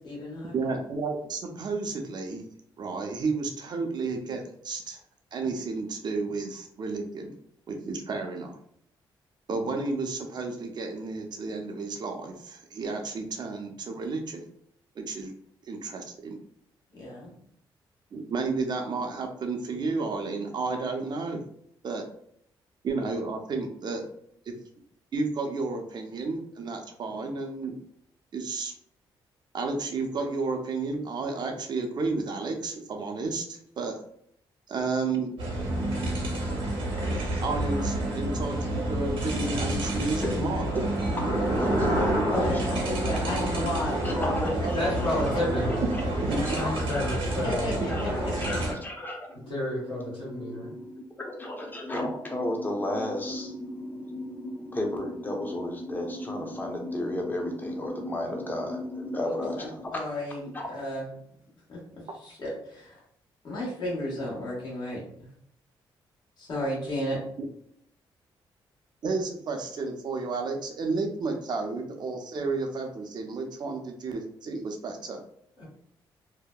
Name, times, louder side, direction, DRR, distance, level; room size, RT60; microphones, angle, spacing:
voice 1, 0.0-0.5 16.9-17.3 42.2-44.7 45.1-45.2 47.3-48.6 59.2-61.1 61.7-61.8 62.2-63.0 63.4-65.3 66.4-67.2, left 1 dB, 55° left, -4 dB, 1.2 m, -33 dB
voice 2, 0.5-2.4 2.8-5.0 5.3-7.4 7.7-8.6 9.5-14.5 15.0-15.3 15.6-16.4 18.1-21.5 21.8-22.1 22.8-24.0 24.5-24.6 25.1-27.7 28.3-28.7 29.5-34.0 34.7-35.3 37.4-40.8 46.2-46.6 69.0-75.2, right 3 dB, 50° right, 4 dB, 0.5 m, -32 dB
sound 1, 35.4-48.7, right 1 dB, 75° right, 0.8 m, -28 dB
voice 3, 41.4-42.8 44.0-45.2 45.6-46.0 46.5-59.9 60.5-60.7, left 1 dB, 20° left, 1 dB, 0.6 m, -34 dB
voice 4, 44.7-45.8 46.3-47.7 49.5-50.7 75.6-75.7, left 1 dB, 75° left, -7 dB, 1.4 m, -31 dB
2.6 x 2.0 x 2.2 m, 0.68 s
cardioid pair, 80°, 9 cm